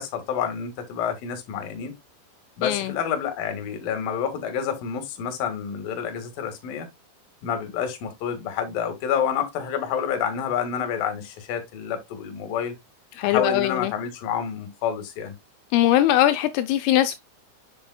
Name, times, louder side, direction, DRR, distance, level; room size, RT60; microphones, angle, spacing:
voice 1, 0.0-1.9 2.6-6.9 7.4-12.8 13.2-15.3, left 7 dB, 55° left, 2.9 m, -28 dB
voice 2, 13.2-13.9 15.7-17.2, left 13 dB, 80° left, 3.1 m, -21 dB
8.4 x 6.9 x 2.2 m
omnidirectional pair, 5.9 m